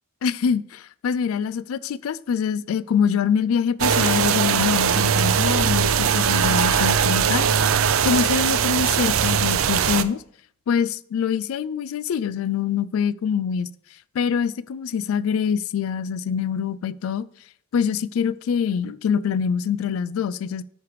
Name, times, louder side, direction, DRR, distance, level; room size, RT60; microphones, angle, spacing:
voice 1, 0.2-7.5 8.0-10.2 10.7-13.7 14.1-17.3 17.7-20.6, left 7 dB, 75° left, 0.3 m, -24 dB
sound 1, 3.8-10.0, right 7 dB, 70° right, 0.4 m, -20 dB
9.6 x 3.3 x 4.6 m
head